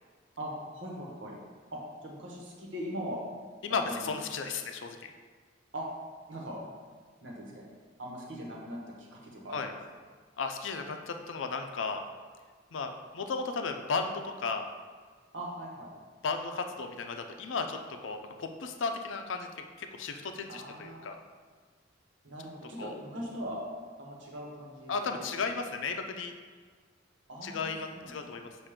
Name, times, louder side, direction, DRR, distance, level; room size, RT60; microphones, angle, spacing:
voice 1, 0.4-1.4 1.7-3.2 3.7-4.2 5.7-5.9 6.3-6.6 7.2-7.7 8.0-9.7 15.3-15.9 20.5-21.0 22.2-23.6 24.0-25.3 27.3-28.1, equal, 80° right, -2 dB, 1.2 m, -40 dB
voice 2, 3.6-5.0 9.5-9.7 10.4-12.0 12.7-14.7 16.2-21.2 22.8-22.9 24.9-26.3 27.4-28.6, left 4 dB, 90° left, 5 dB, 0.5 m, -35 dB
7.2 x 2.6 x 5.0 m, 1.5 s
head